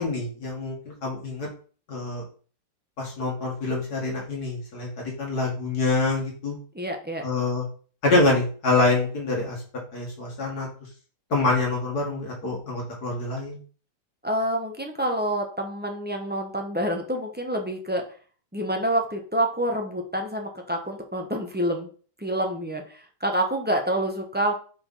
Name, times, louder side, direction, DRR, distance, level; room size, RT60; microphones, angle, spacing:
voice 1, 0.0-1.5 1.9-2.2 3.0-6.6 7.2-7.6 8.0-9.6 9.9-10.7 11.3-13.6, left 3 dB, 65° left, -2 dB, 2.2 m, -26 dB
voice 2, 6.7-7.2 14.2-18.1 18.5-21.9 22.2-24.5, right 1 dB, 10° right, 2 dB, 0.7 m, -27 dB
5.2 x 4.5 x 5.5 m, 0.41 s
omnidirectional pair, 1.8 m